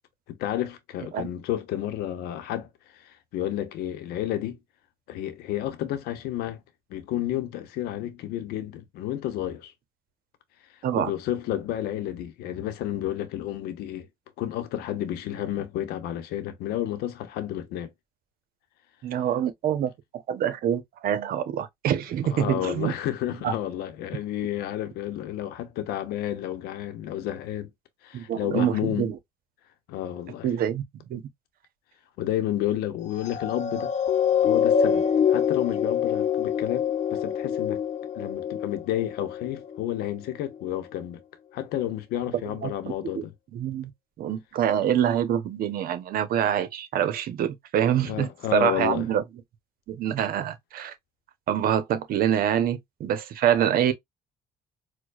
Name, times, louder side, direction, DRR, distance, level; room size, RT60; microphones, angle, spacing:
voice 1, 0.3-2.7 3.0-4.6 5.1-6.6 6.9-9.7 10.9-14.1 14.4-17.9 22.2-27.7 28.0-29.1 29.9-30.5 32.2-33.9 34.4-35.0 35.3-37.8 38.2-41.2 41.5-43.3 48.0-49.1, left 12 dB, 85° left, 0.8 m, -31 dB
voice 2, 19.0-22.9 23.4-23.5 28.1-29.2 30.4-30.8 31.1-31.2 42.6-42.7 43.1-43.2 43.5-43.9 44.2-49.2 49.9-50.9 51.5-53.9, right 10 dB, 70° right, 0.8 m, -25 dB
sound 1, 33.1-39.8 40.4-40.6, left 8 dB, 50° left, 0.6 m, -25 dB
4.5 x 2.2 x 2.4 m
cardioid pair, 85°, 16 cm